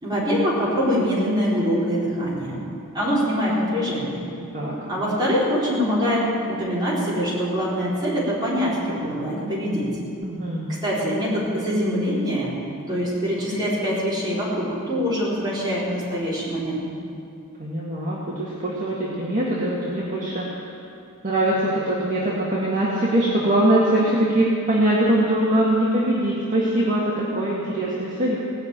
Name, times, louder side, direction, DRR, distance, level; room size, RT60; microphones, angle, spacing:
voice 1, 0.0-2.7 2.9-4.2 4.9-9.9 10.8-12.6 12.9-16.9, equal, 20° right, -8 dB, 4.4 m, -24 dB
voice 2, 10.2-10.7 17.6-20.5 21.2-28.4, right 1 dB, 35° right, -6 dB, 2.0 m, -22 dB
18.5 x 6.4 x 9.0 m, 2.5 s
head